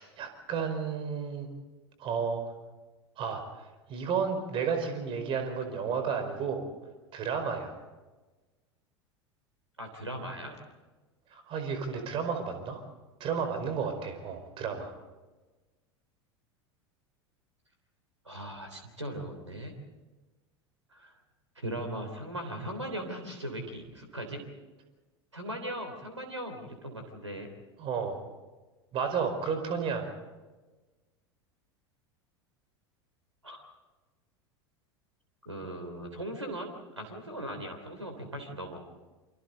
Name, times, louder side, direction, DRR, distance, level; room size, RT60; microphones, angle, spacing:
voice 1, 0.0-1.5 2.0-2.4 3.2-3.4 3.9-6.6 7.1-7.7 11.3-12.8 13.2-14.9 27.8-28.2 28.9-30.1, right 6 dB, 35° right, 6 dB, 4.9 m, -32 dB
voice 2, 9.8-10.6 18.2-19.8 20.9-21.1 21.5-24.5 25.3-27.5 33.4-33.6 35.4-38.8, right 1 dB, 85° right, 6 dB, 3.4 m, -39 dB
29.0 x 25.0 x 4.1 m, 1.2 s
figure-of-eight pair, 80°, 15 cm